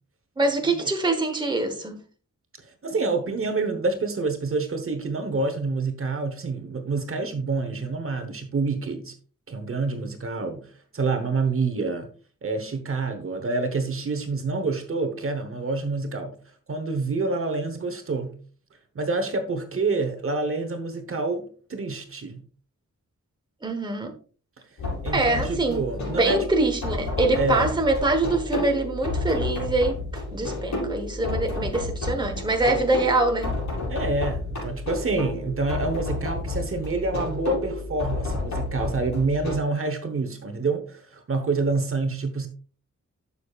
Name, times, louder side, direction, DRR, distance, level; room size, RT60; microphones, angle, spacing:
voice 1, 0.4-2.0 23.6-24.1 25.1-33.5, right 2 dB, 15° right, 1.1 m, -24 dB
voice 2, 2.8-9.1 9.5-12.1 12.4-16.3 16.7-18.4 18.9-22.4 25.0-26.4 27.4-27.7 33.9-42.5, right 3 dB, 45° right, 1.1 m, -27 dB
sound 1, 24.8-39.6, left 2 dB, 65° left, 4.7 m, -30 dB
12.0 x 6.8 x 2.4 m
wide cardioid pair, 175°, 30 cm